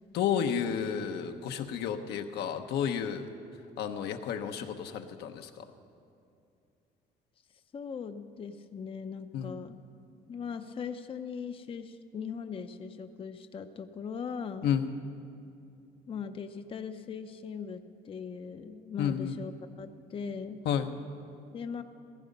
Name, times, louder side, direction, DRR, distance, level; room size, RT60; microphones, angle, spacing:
voice 1, 0.1-3.3 3.8-5.6 9.3-9.5 14.6-14.9 19.0-19.3 20.6-20.9, left 8 dB, 80° left, 5 dB, 1.0 m, -31 dB
voice 2, 7.7-9.8 10.3-14.7 16.1-19.5 19.8-20.6 21.5-21.8, left 6 dB, 30° left, 8 dB, 0.6 m, -39 dB
15.5 x 15.0 x 5.3 m, 2.6 s
cardioid pair, 110°, 17 cm